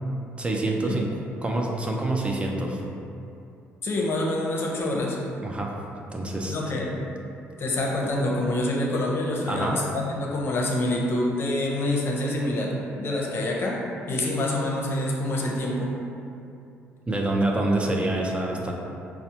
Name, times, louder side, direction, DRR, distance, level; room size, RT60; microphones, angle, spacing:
voice 1, 0.4-1.1 1.4-2.8 5.4-5.8 6.1-6.8 9.5-9.8 17.1-18.7, right 2 dB, 20° right, -1 dB, 0.4 m, -26 dB
voice 2, 3.8-5.2 6.5-6.9 7.6-12.7 13.0-13.8 14.1-15.9, left 1 dB, 50° left, -2 dB, 0.6 m, -26 dB
4.0 x 2.0 x 2.8 m, 2.6 s
supercardioid pair, 70°, 5 cm